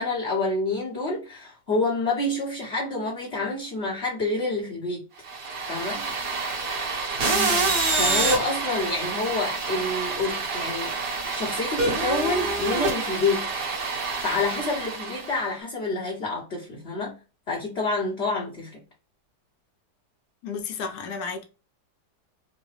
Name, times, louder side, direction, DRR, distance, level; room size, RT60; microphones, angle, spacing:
voice 1, 0.0-5.0 5.7-6.1 7.9-10.9 11.3-13.5 14.2-17.1 17.5-18.8, left 2 dB, 45° left, 1.1 m, -28 dB
sound 1, 5.3-15.4, right 3 dB, 55° right, 1.8 m, -27 dB
voice 2, 7.3-7.7 20.4-21.4, left 5 dB, 65° left, 1.3 m, -33 dB
3.8 x 2.2 x 3.0 m
omnidirectional pair, 1.9 m